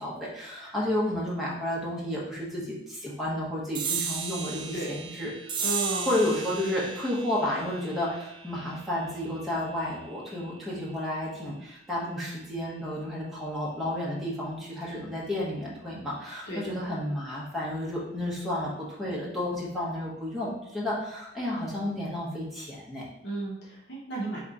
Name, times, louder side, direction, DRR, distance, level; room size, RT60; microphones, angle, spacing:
voice 1, 0.0-5.3 6.1-23.0, left 1 dB, ahead, -6 dB, 0.9 m, -31 dB
sound 1, 3.7-10.6, right 6 dB, 25° right, 0.3 m, -36 dB
voice 2, 5.6-6.1 16.5-16.8 23.2-24.4, right 2 dB, 70° left, -4 dB, 1.0 m, -33 dB
3.5 x 2.9 x 3.9 m, 0.85 s
head